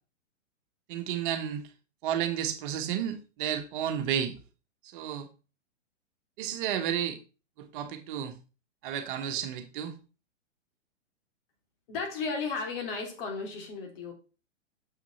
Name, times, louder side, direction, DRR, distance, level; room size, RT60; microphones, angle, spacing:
voice 1, 0.9-1.6 2.0-4.3 4.9-5.3 6.4-7.2 7.6-8.3 8.8-10.0, right 9 dB, 45° right, 1.5 m, -32 dB
voice 2, 11.9-14.1, left 4 dB, 50° left, 3.2 m, -34 dB
7.0 x 6.0 x 4.1 m
hypercardioid pair, 120°, 37 cm